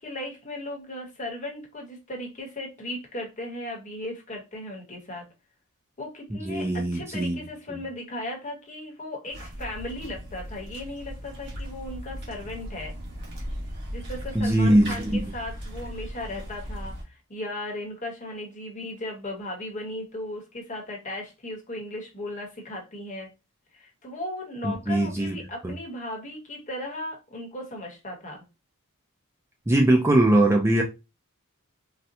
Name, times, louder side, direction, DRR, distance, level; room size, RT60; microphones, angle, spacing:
voice 1, 0.0-5.3 6.0-12.9 13.9-23.3 23.7-28.4, left 1 dB, 35° left, 1.1 m, -36 dB
voice 2, 6.5-7.4 14.4-15.2 24.6-25.4 25.6-25.7 29.7-30.8, right 1 dB, 10° right, 0.4 m, -21 dB
sound 1, 9.3-17.0, equal, 50° right, 1.3 m, -37 dB
4.1 x 2.2 x 2.6 m
head